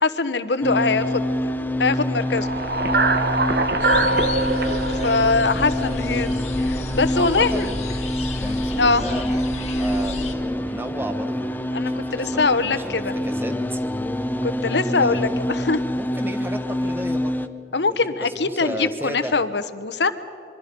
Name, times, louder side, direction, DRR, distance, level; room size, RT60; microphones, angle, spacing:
voice 1, 0.0-1.2 1.8-2.5 4.9-7.7 8.8-9.0 11.7-13.1 14.4-15.8 17.7-20.1, left 4 dB, 80° left, 11 dB, 1.1 m, -22 dB
sound 1, 0.6-17.5, left 1 dB, 10° left, 0.6 m, -26 dB
sound 2, 2.2-6.5, right 2 dB, 60° right, 1.4 m, -23 dB
sound 3, 3.8-10.3, left 2 dB, 40° left, 1.8 m, -32 dB
voice 2, 7.2-7.8 8.3-11.5 11.8-13.8 15.0-15.6 15.9-17.4 18.0-19.4, equal, 10° right, 8 dB, 1.3 m, -34 dB
26.0 x 23.5 x 5.3 m, 2.6 s
head